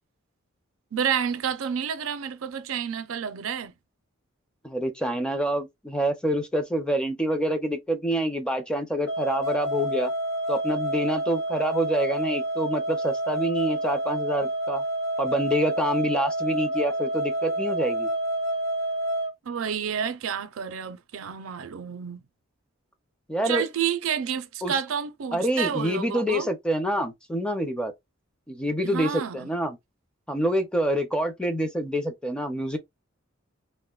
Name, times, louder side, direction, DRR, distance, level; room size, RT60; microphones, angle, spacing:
voice 1, 0.9-3.7 19.5-22.2 23.4-26.5 28.8-29.5, right 7 dB, 75° right, 0.5 m, -30 dB
voice 2, 4.6-10.1 10.5-14.8 15.2-18.1 23.3-23.6 24.6-24.8 25.3-27.9 28.5-29.8 30.3-32.8, equal, 5° left, 0.5 m, -27 dB
sound 1, 9.1-19.3, right 1 dB, 90° left, 0.8 m, -28 dB
3.5 x 2.1 x 2.3 m
head